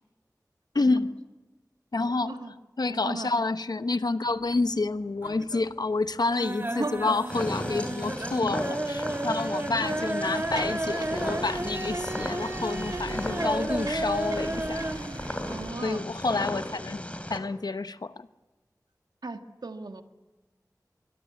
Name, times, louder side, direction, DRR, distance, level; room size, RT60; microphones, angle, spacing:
voice 1, 0.7-1.1 1.9-2.3 2.8-14.9 15.8-17.0 17.3-18.3, left 3 dB, 75° left, 0.9 m, -29 dB
voice 2, 2.0-2.5 2.9-3.3 6.6-7.1 15.5-16.1 19.2-20.0, right 3 dB, 85° right, 1.6 m, -37 dB
sound 1, 4.3-4.9 5.2-5.7 6.0-15.0 15.3-15.4 15.7-15.8, right 1 dB, 35° right, 2.2 m, -32 dB
Purr, 7.3-17.4, left 1 dB, 20° left, 3.3 m, -36 dB
sound 2, 10.2-15.7, right 2 dB, 70° right, 1.7 m, -41 dB
24.0 x 23.0 x 9.6 m
wide cardioid pair, 55°, 7 cm